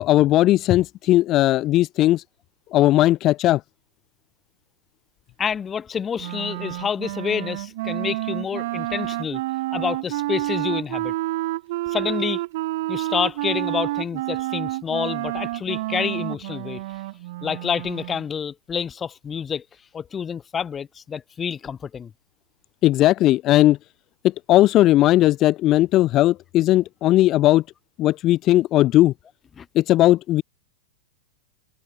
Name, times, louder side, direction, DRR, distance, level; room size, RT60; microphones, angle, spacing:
voice 1, 0.0-2.2 2.7-3.6 22.8-23.8 24.2-27.6 28.0-29.1 29.7-30.4, left 15 dB, 35° left, 0.5 m, -17 dB
voice 2, 5.4-9.4 9.7-11.1 11.9-12.4 12.9-16.8 17.4-19.6 19.9-22.1 29.6-29.7, left 7 dB, 20° left, 1.0 m, -28 dB
Wind instrument woodwind instrument, 6.2-18.2, right 18 dB, 60° right, 2.0 m, -29 dB
hypercardioid pair, 130°, 0 cm